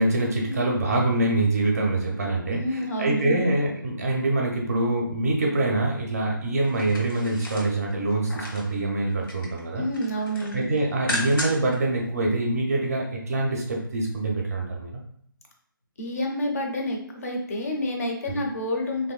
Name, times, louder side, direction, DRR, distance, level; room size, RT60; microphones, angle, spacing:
voice 1, 0.0-9.8 10.5-15.0 18.2-18.4, right 2 dB, 45° right, -1 dB, 0.5 m, -25 dB
voice 2, 2.5-3.5 9.8-10.7 16.0-19.1, equal, 40° left, 1 dB, 0.5 m, -29 dB
sound 1, 6.6-8.7 9.1-9.6 9.9-11.8 12.1-12.2, left 1 dB, 70° left, 1.0 m, -34 dB
2.9 x 2.5 x 2.2 m, 0.66 s
figure-of-eight pair, 160°, 12 cm